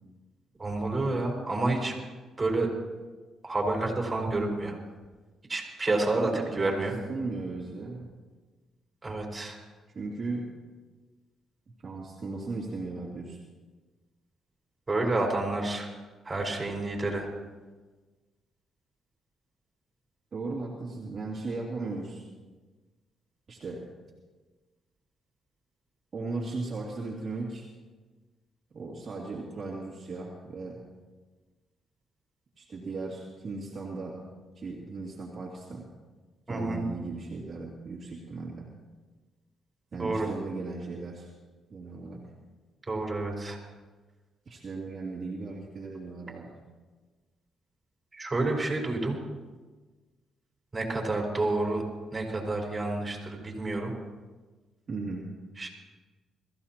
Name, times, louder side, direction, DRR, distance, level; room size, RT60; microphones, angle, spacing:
voice 1, 0.6-1.9 2.4-2.7 3.4-4.8 5.5-6.9 9.0-9.6 14.9-15.9 16.2-17.3 36.5-36.8 40.0-40.3 42.9-43.6 48.1-49.2 50.7-51.8 52.1-53.9 55.6-55.7, right 2 dB, 25° right, -1 dB, 4.5 m, -29 dB
voice 2, 6.2-6.8 7.1-8.1 9.9-10.5 11.8-13.4 20.3-22.2 23.5-23.9 26.1-27.7 28.7-30.8 32.6-34.2 34.5-35.9 36.5-38.7 39.9-41.3 41.7-42.2 44.5-46.6 54.9-55.3, right 3 dB, 45° right, -4 dB, 2.7 m, -37 dB
22.5 x 15.0 x 3.0 m, 1.3 s
cardioid pair, 90°, 0 cm